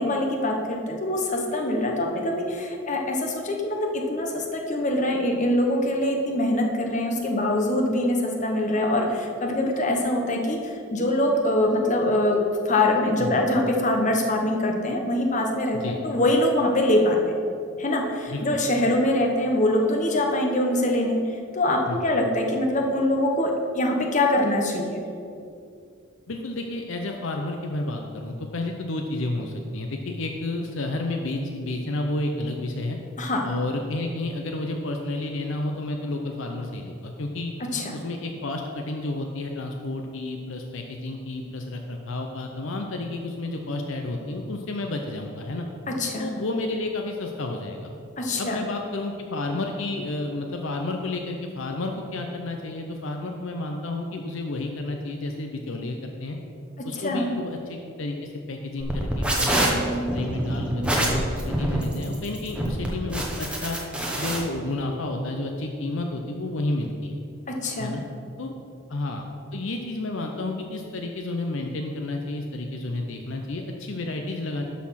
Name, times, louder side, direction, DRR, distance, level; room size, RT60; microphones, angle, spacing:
voice 1, 0.0-17.2 17.8-21.2 21.5-25.0 33.2-33.4 37.7-38.0 45.9-46.3 48.2-48.6 56.9-57.3 67.5-68.0, left 1 dB, 35° left, 2 dB, 1.0 m, -24 dB
voice 2, 18.3-18.6 21.9-22.1 26.3-33.0 33.4-37.5 37.9-45.7 46.2-47.9 48.4-56.4 56.8-63.8 64.2-67.2 67.8-68.0 68.4-68.5 68.9-69.2 69.5-74.6, left 2 dB, 65° left, 3 dB, 0.6 m, -31 dB
sound 1, 58.8-64.4, right 1 dB, 5° right, 1.0 m, -25 dB
12.0 x 4.2 x 5.7 m, 2.5 s
head